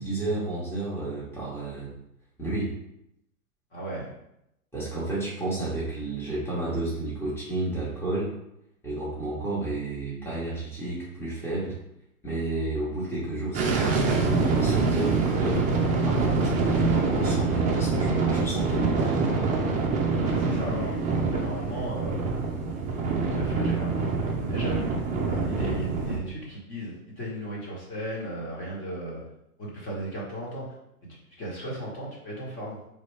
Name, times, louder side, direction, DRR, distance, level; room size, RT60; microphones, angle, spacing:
voice 1, 0.0-1.9 2.4-2.7 4.7-8.3 8.8-11.7 12.2-19.5 25.6-25.8, right 2 dB, 5° left, -9 dB, 1.3 m, -31 dB
voice 2, 3.7-4.1 20.2-22.2 23.2-24.9 25.3-29.2 29.6-30.6 31.0-32.8, right 1 dB, 25° left, -4 dB, 1.5 m, -35 dB
sound 1, 13.5-26.2, right 3 dB, 20° right, 0.6 m, -25 dB
4.0 x 3.5 x 3.3 m, 0.82 s
hypercardioid pair, 120°, 44 cm